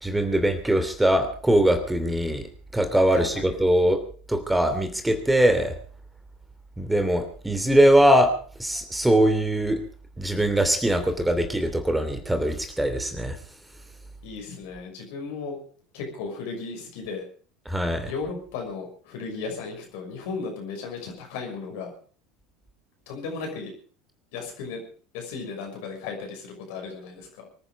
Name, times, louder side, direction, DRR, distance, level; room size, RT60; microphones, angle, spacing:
voice 1, 0.0-2.4 2.7-4.0 4.3-5.7 6.8-8.3 8.6-9.8 10.2-13.4 17.7-18.1, right 1 dB, 5° right, 8 dB, 2.9 m, -21 dB
voice 2, 3.1-3.5 14.2-15.6 15.9-17.2 18.1-21.9 23.1-23.7 24.3-24.8 25.1-27.4, left 4 dB, 65° left, 2 dB, 6.1 m, -35 dB
24.0 x 10.0 x 5.2 m, 0.42 s
figure-of-eight pair, 75°, 0 cm